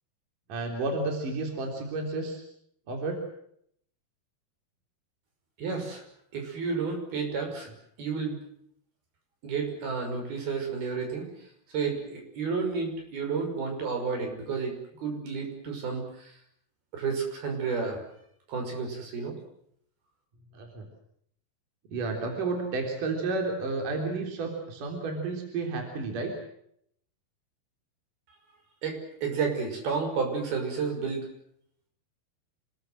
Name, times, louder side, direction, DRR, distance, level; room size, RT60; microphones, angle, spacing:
voice 1, 0.5-2.4 2.9-3.2 20.5-20.9 21.9-26.3, right 3 dB, 60° right, 2 dB, 5.2 m, -31 dB
voice 2, 5.6-6.0 6.3-7.7 8.0-8.4 9.4-11.5 11.7-16.4 16.9-18.1 18.5-19.4 28.8-31.3, right 5 dB, 80° right, 3 dB, 7.8 m, -31 dB
28.5 x 21.0 x 7.8 m, 0.71 s
omnidirectional pair, 4.3 m